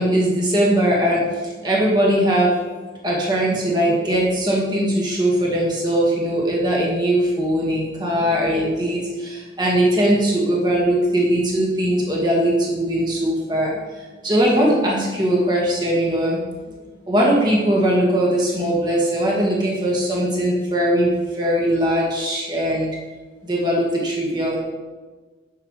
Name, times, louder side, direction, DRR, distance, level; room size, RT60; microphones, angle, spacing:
voice 1, 0.0-2.5 3.0-13.8 14.2-16.4 17.1-22.9 23.4-24.6, right 1 dB, 25° right, -3 dB, 1.7 m, -20 dB
11.0 x 7.0 x 3.2 m, 1.3 s
head